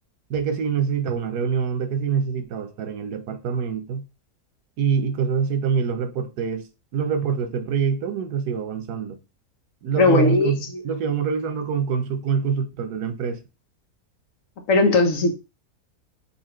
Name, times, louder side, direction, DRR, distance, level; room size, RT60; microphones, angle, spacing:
voice 1, 0.3-4.0 4.8-6.7 6.9-9.2 9.8-13.4, right 6 dB, 80° right, 1.3 m, -25 dB
voice 2, 10.0-10.5 14.7-15.3, left 3 dB, 60° left, 1.2 m, -18 dB
4.2 x 2.8 x 4.3 m
omnidirectional pair, 1.7 m